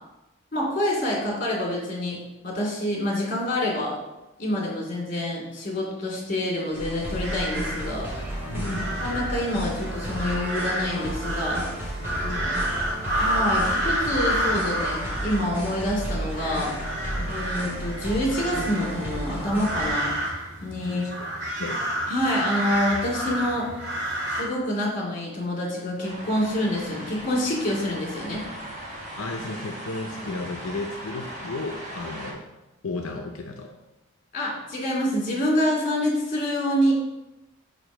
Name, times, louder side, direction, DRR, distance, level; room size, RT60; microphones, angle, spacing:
voice 1, 0.5-3.9 4.4-8.1 9.0-12.0 13.1-16.7 17.3-20.1 20.6-21.1 22.1-23.7 24.3-28.4 34.3-36.9, left 1 dB, 40° left, -3 dB, 2.4 m, -27 dB
sound 1, 6.7-19.9, right 1 dB, 10° right, 2.4 m, -33 dB
sound 2, 7.0-24.4, right 1 dB, 55° right, 2.3 m, -30 dB
voice 2, 8.5-9.0 12.1-12.8 17.2-17.3 20.8-21.1 21.6-21.8 29.2-32.4 32.8-33.8, left 3 dB, 80° left, 3 dB, 0.6 m, -34 dB
sound 3, 26.0-32.3, right 1 dB, 35° right, 1.5 m, -38 dB
5.0 x 4.8 x 6.1 m, 1.0 s
head